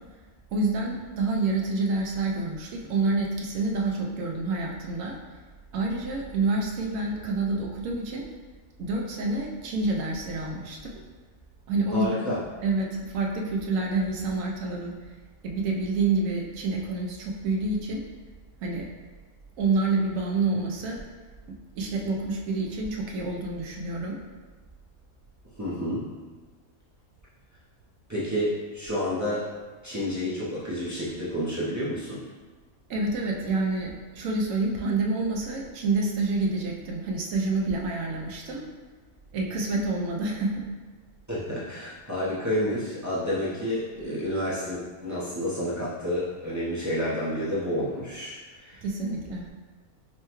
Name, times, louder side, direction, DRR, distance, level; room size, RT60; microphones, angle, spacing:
voice 1, 0.5-5.1 5.7-8.2 8.8-10.9 11.7-12.1 12.6-14.9 15.4-18.0 18.6-18.9 19.6-21.0 21.7-24.2 32.9-38.6 39.3-40.6 48.8-49.5, right 3 dB, 65° right, -1 dB, 0.9 m, -28 dB
voice 2, 11.9-12.4 25.6-26.1 28.1-29.5 29.8-32.2 41.3-48.8, equal, 25° right, -9 dB, 0.4 m, -30 dB
5.5 x 2.2 x 3.0 m, 1.4 s
omnidirectional pair, 1.6 m